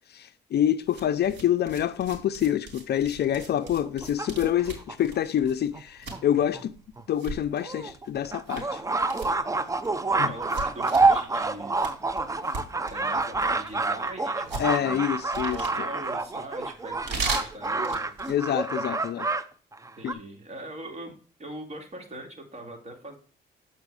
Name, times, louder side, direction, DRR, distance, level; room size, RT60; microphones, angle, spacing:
voice 1, 0.1-6.7 7.1-8.8 10.2-10.3 14.6-15.9 18.3-19.3 20.0-20.2, left 10 dB, 55° left, 0.5 m, -27 dB
sound 1, 0.8-18.4, right 4 dB, 60° right, 3.2 m, -39 dB
sound 2, 3.3-4.9 5.7-5.8 6.1-6.2 6.5-6.6 7.0-7.1 7.6-19.4 19.7-20.1, right 3 dB, 15° right, 0.6 m, -28 dB
voice 2, 10.1-11.8 12.9-15.1 15.5-18.1 20.0-21.1 21.4-23.2, right 1 dB, 35° right, 2.4 m, -41 dB
7.9 x 4.4 x 4.8 m
cardioid pair, 90°, 20 cm